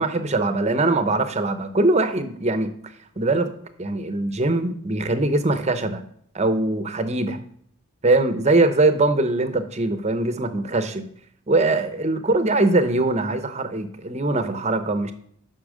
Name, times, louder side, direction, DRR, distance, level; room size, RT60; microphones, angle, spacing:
voice 1, 0.0-2.7 3.2-3.5 3.8-6.0 6.3-7.4 8.0-11.1 11.5-15.1, right 2 dB, 30° right, 10 dB, 0.8 m, -22 dB
8.6 x 5.8 x 6.4 m, 0.65 s
head